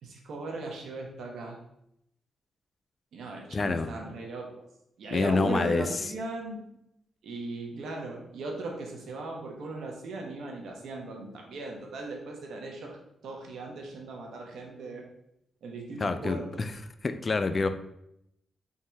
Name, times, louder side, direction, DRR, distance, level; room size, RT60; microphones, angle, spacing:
voice 1, 0.0-1.6 3.1-4.6 5.0-6.6 7.2-13.0 13.2-15.0 15.6-16.6, right 2 dB, 75° right, 1 dB, 1.0 m, -38 dB
voice 2, 3.5-3.9 5.1-5.8 16.0-16.7 17.0-17.7, left 3 dB, 40° left, 10 dB, 0.3 m, -27 dB
3.6 x 2.6 x 4.4 m, 0.79 s
cardioid pair, 75°, 0 cm